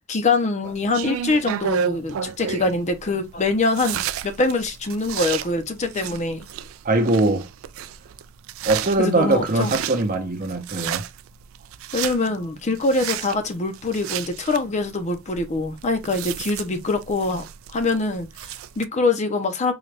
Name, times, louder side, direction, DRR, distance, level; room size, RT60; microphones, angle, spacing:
voice 1, 0.1-6.5 9.0-9.7 11.9-19.7, left 3 dB, 35° left, 0.6 m, -24 dB
sound 1, 0.6-18.9, right 9 dB, 70° right, 0.3 m, -33 dB
voice 2, 6.8-7.5 8.6-11.0, right 2 dB, 40° right, 0.7 m, -21 dB
3.9 x 2.3 x 3.3 m
head